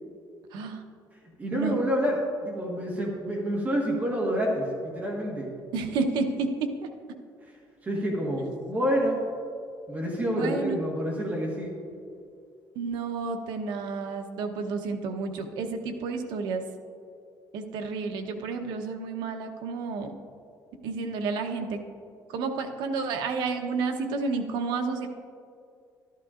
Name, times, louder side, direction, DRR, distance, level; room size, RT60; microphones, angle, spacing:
voice 1, 0.5-0.8 1.5-1.8 5.7-6.5 6.8-6.9 10.3-10.8 12.8-16.6 17.5-20.1 20.8-21.8 22.3-25.1, right 4 dB, 80° right, 5 dB, 0.9 m, -30 dB
voice 2, 1.4-5.5 7.8-9.2 9.9-11.8, equal, 20° right, -2 dB, 1.4 m, -28 dB
12.5 x 11.5 x 2.5 m, 2.4 s
cardioid pair, 160°, 7 cm